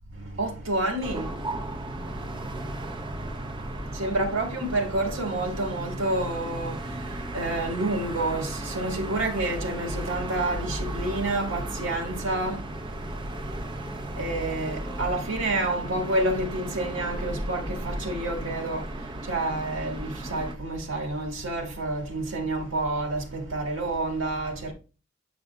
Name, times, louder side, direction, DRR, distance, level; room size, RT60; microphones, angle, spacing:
voice 1, 0.1-24.7, right 2 dB, 80° right, 1.8 m, -29 dB
sound 1, 1.0-20.5, right 1 dB, 25° right, 0.7 m, -35 dB
8.4 x 5.1 x 2.3 m
head